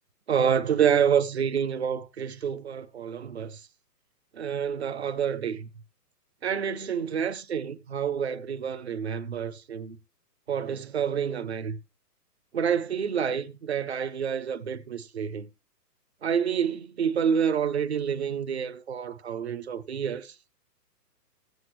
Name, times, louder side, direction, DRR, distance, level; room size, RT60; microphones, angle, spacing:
voice 1, 0.3-3.7 4.3-5.7 6.4-10.0 10.5-11.8 12.5-15.5 16.2-20.4, right 7 dB, 45° right, 0.5 m, -28 dB
19.5 x 7.9 x 3.1 m
hypercardioid pair, 175°, 49 cm